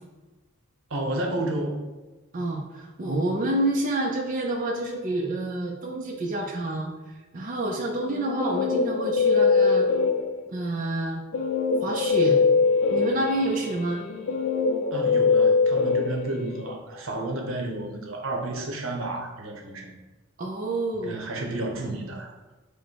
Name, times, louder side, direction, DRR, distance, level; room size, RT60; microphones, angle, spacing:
voice 1, 0.9-1.8 14.9-20.0 21.0-22.3, right 2 dB, 80° right, 2 dB, 0.8 m, -31 dB
voice 2, 2.3-6.9 7.3-9.9 10.5-11.2 11.8-12.4 12.9-14.0 20.4-21.2, right 1 dB, 40° right, 0 dB, 0.5 m, -28 dB
Guitar, 8.0-10.6 11.3-16.7, left 4 dB, 85° left, 0.5 m, -23 dB
5.2 x 2.1 x 4.5 m, 1.2 s
head